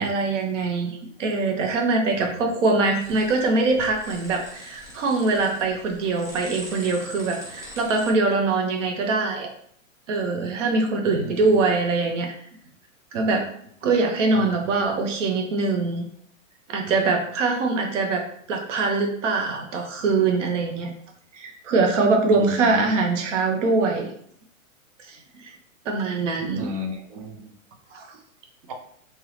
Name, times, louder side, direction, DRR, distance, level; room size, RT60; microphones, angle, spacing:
voice 1, 0.0-9.5 10.1-12.3 13.1-13.4 13.8-16.1 16.7-20.9 21.3-24.1 25.1-25.5 25.8-26.7 27.9-28.1, right 3 dB, 60° right, 2 dB, 1.1 m, -23 dB
voice 2, 2.1-2.5 11.1-11.7 14.3-14.8 22.3-22.9 26.6-27.5 28.7-28.8, left 2 dB, 30° right, 3 dB, 0.3 m, -35 dB
sound 1, 3.0-8.1, equal, 5° right, 1.2 m, -42 dB
3.5 x 3.1 x 3.3 m, 0.64 s
hypercardioid pair, 140°, 42 cm